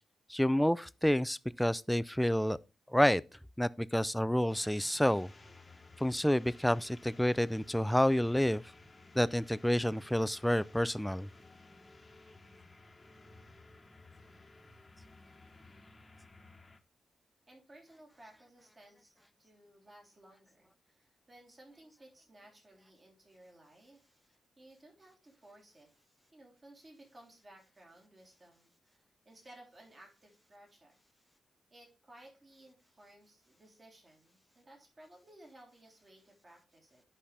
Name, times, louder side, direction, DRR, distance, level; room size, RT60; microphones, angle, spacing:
voice 1, 0.3-2.6 2.9-3.2 3.6-5.3 6.0-8.6 9.1-11.3, equal, 5° left, 0.4 m, -29 dB
sound 1, 4.5-16.8, left 2 dB, 25° left, 1.2 m, -56 dB
voice 2, 17.5-24.0 24.3-25.9 26.3-29.0 29.2-30.9 31.7-37.0, right 1 dB, 35° right, 3.4 m, -58 dB
11.0 x 5.7 x 3.3 m
cardioid pair, 90°, 0 cm